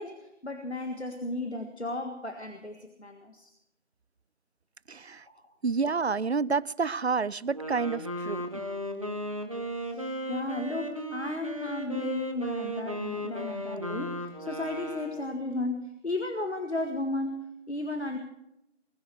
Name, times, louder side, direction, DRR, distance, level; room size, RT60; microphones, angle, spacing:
voice 1, 0.0-3.5 5.3-5.4 9.8-18.2, left 2 dB, 65° left, 5 dB, 1.8 m, -34 dB
voice 2, 4.9-5.3 5.6-8.6, right 4 dB, 60° right, 24 dB, 0.5 m, -29 dB
Wind instrument woodwind instrument, 7.4-15.4, right 1 dB, 30° right, 1.3 m, -35 dB
21.0 x 14.5 x 4.8 m, 0.83 s
figure-of-eight pair, 170°, 36 cm